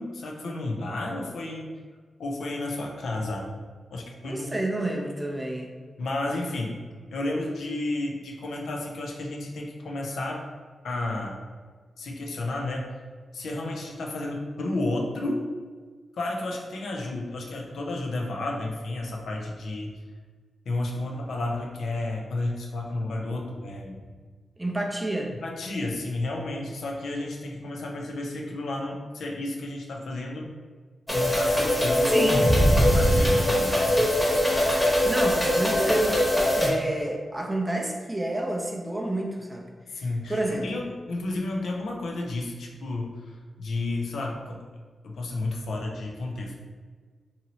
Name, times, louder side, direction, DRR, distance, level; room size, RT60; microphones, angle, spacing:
voice 1, 0.0-1.7 2.2-3.5 3.9-4.5 6.0-6.8 7.1-10.4 10.8-11.4 12.0-12.9 13.3-15.4 16.2-19.9 20.7-24.0 25.4-30.5 31.1-32.3 32.6-34.1 39.9-43.3 43.6-44.6 45.0-46.6, left 2 dB, 85° left, 0 dB, 0.5 m, -32 dB
voice 2, 4.2-5.7 24.6-25.3 32.1-32.5 35.0-39.7 40.0-40.7, right 1 dB, 15° right, 1 dB, 0.5 m, -29 dB
sound 1, 31.1-36.7, equal, 5° left, 1.0 m, -21 dB
2.9 x 2.7 x 2.7 m, 1.5 s
cardioid pair, 75°, 0 cm